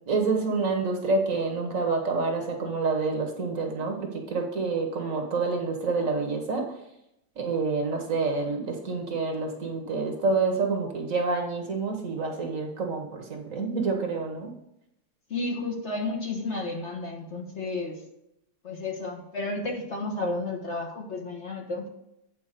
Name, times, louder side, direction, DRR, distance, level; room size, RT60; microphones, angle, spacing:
voice 1, 0.1-6.7 7.4-14.5, right 4 dB, 55° right, 3 dB, 1.5 m, -28 dB
voice 2, 15.3-18.0 18.6-21.9, left 2 dB, 45° left, 1 dB, 1.4 m, -32 dB
8.9 x 4.4 x 6.6 m, 0.83 s
omnidirectional pair, 1.8 m